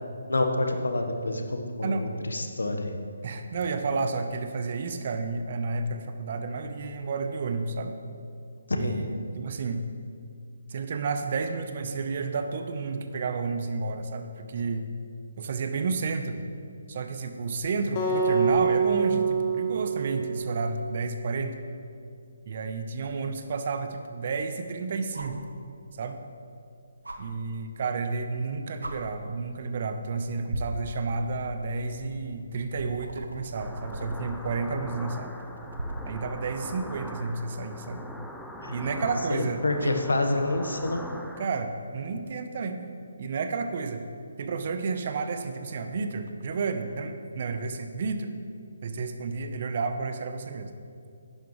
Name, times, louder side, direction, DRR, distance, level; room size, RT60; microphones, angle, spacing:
voice 1, 0.3-2.9 8.7-8.9 38.6-38.7 39.3-41.0, left 2 dB, 80° left, 5 dB, 1.2 m, -27 dB
voice 2, 3.2-7.9 8.7-9.8 10.7-14.9 15.4-16.4 16.9-21.6 22.5-25.4 26.0-26.2 27.2-35.4 36.1-38.0 38.7-39.9 41.4-42.8 43.2-44.1 44.4-48.3 48.8-50.7, right 4 dB, 45° right, 8 dB, 0.8 m, -31 dB
Acoustic guitar, 18.0-21.2, right 5 dB, 30° left, 1.8 m, -26 dB
sound 1, 22.9-23.0 25.1-25.4 27.0-27.2 28.3-28.4 28.8-29.0 29.9-30.1 30.5-36.2 37.8-37.9, right 1 dB, 85° right, 1.1 m, -39 dB
sound 2, 33.5-41.5, equal, ahead, 0.4 m, -42 dB
11.0 x 10.5 x 3.2 m, 2.4 s
figure-of-eight pair, 145°, 0 cm